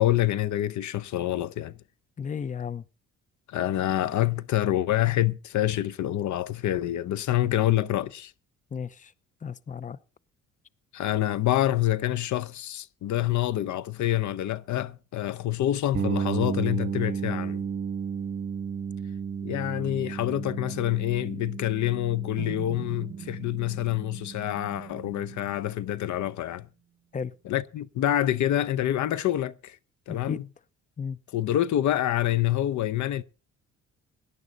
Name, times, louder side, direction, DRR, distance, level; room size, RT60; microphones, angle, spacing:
voice 1, 0.0-1.8 3.5-8.3 10.9-17.6 19.4-26.7 27.5-29.8 30.1-30.4 31.3-33.2, left 13 dB, 70° left, 0.8 m, -27 dB
voice 2, 2.2-2.8 8.7-9.1 9.4-10.0 27.1-27.3 30.1-30.4 31.0-31.2, left 6 dB, 25° left, 0.6 m, -34 dB
sound 1, 15.9-25.7, right 7 dB, 35° right, 1.5 m, -34 dB
sound 2, 22.4-26.3, right 11 dB, 55° right, 0.7 m, -45 dB
17.5 x 11.0 x 4.0 m
cardioid pair, 90°, 30 cm